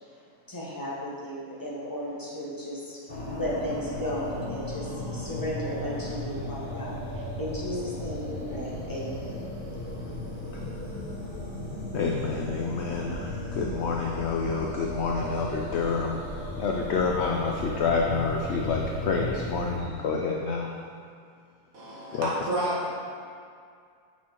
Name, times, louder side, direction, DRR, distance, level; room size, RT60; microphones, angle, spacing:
voice 1, 0.5-3.0 3.3-9.4, left 1 dB, 15° left, -7 dB, 0.9 m, -35 dB
sound 1, 3.1-19.8, left 1 dB, 35° left, 1.2 m, -35 dB
voice 2, 11.9-16.2 16.6-20.7 22.1-22.3, left 4 dB, 85° left, 0 dB, 0.6 m, -28 dB
voice 3, 21.7-22.9, right 1 dB, 60° right, -5 dB, 1.5 m, -30 dB
6.1 x 4.3 x 4.3 m, 2.3 s
omnidirectional pair, 1.7 m